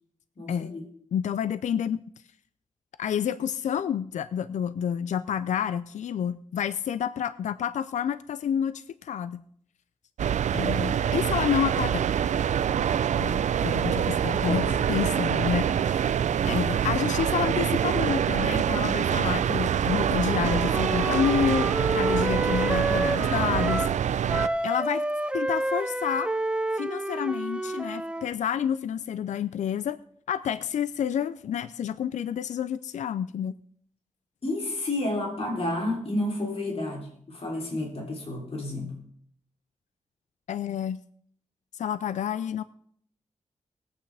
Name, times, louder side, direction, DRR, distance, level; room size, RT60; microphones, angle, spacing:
voice 1, 0.4-0.9 14.4-14.7 34.4-38.9, left 1 dB, 50° left, 0 dB, 3.0 m, -30 dB
voice 2, 1.1-2.0 3.0-9.4 10.5-12.1 13.2-14.6 14.9-23.9 24.6-25.0 25.3-26.3 26.8-30.0 30.3-33.5 40.5-41.0 41.7-42.6, left 9 dB, 75° left, 14 dB, 0.4 m, -29 dB
sound 1, 10.2-24.5, right 9 dB, 70° right, 0.4 m, -25 dB
Wind instrument woodwind instrument, 20.2-24.0 24.3-28.3, right 1 dB, 10° right, 0.5 m, -29 dB
20.0 x 8.7 x 3.4 m, 0.63 s
cardioid pair, 70°, 13 cm